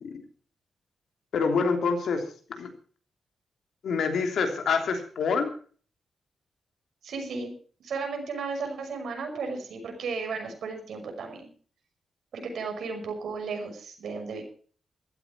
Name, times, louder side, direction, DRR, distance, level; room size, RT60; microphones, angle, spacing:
voice 1, 1.3-2.2 2.5-2.7 3.8-5.5, left 5 dB, 80° left, 5 dB, 3.2 m, -26 dB
voice 2, 7.0-7.5 7.8-11.5 12.3-14.4, right 4 dB, 80° right, 3 dB, 5.7 m, -34 dB
15.5 x 13.5 x 4.6 m, 0.43 s
wide cardioid pair, 145°, 0 cm